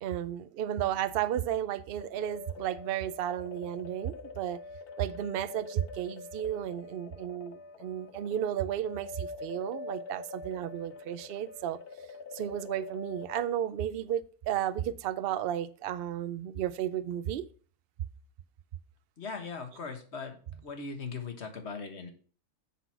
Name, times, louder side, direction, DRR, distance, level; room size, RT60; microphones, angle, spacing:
voice 1, 0.0-4.6 5.0-11.8 12.3-17.5, right 11 dB, 85° right, 0.5 m, -33 dB
sound 1, 2.0-13.5, left 4 dB, 90° left, 1.4 m, -45 dB
voice 2, 19.2-22.1, left 4 dB, 50° left, 1.5 m, -39 dB
7.4 x 6.1 x 5.7 m
omnidirectional pair, 1.6 m